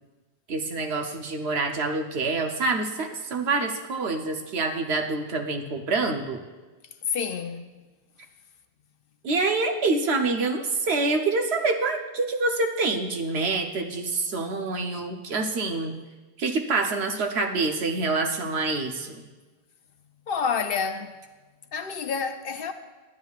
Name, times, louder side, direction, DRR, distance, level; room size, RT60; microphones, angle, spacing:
voice 1, 0.5-6.4 9.2-16.0 16.4-19.2, right 3 dB, 75° right, 1.1 m, -26 dB
voice 2, 7.1-7.7 20.3-21.2 21.7-22.7, left 6 dB, 65° left, 0.7 m, -28 dB
12.0 x 10.0 x 2.4 m
omnidirectional pair, 1.1 m